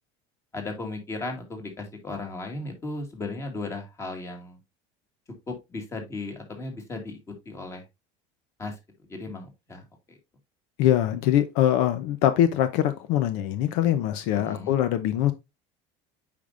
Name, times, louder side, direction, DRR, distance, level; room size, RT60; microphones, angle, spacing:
voice 1, 0.5-4.6 5.5-7.2 7.5-7.8 8.6-8.7 9.1-10.2 14.3-14.7, left 2 dB, 20° left, 2.1 m, -36 dB
voice 2, 10.8-15.3, left 11 dB, 70° left, 0.8 m, -23 dB
8.4 x 5.2 x 2.5 m
cardioid pair, 155°, 15 cm